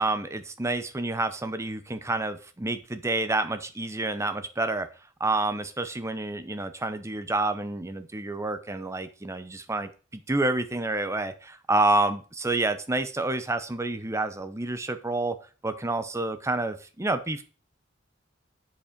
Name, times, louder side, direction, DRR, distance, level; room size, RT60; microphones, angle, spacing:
voice 1, 0.0-4.9 5.2-15.4 15.6-17.4, right 2 dB, 15° right, 10 dB, 0.7 m, -28 dB
7.3 x 5.3 x 5.1 m, 0.36 s
head